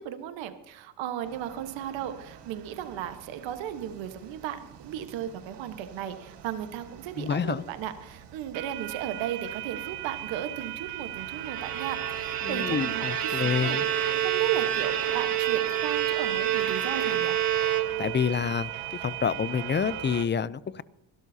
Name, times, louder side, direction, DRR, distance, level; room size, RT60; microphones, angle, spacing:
voice 1, 0.0-13.8 14.2-17.4, right 10 dB, 85° right, 9 dB, 1.3 m, -35 dB
sound 1, 1.2-20.2, right 13 dB, 65° right, 1.4 m, -40 dB
voice 2, 7.2-7.6 12.4-13.8 18.0-18.7 19.0-20.8, left 7 dB, 25° left, 18 dB, 0.5 m, -28 dB
Bowed string instrument, 11.3-18.3, right 10 dB, 50° right, 2.3 m, -28 dB
24.5 x 12.0 x 2.8 m, 0.92 s
cardioid pair, 100°, 44 cm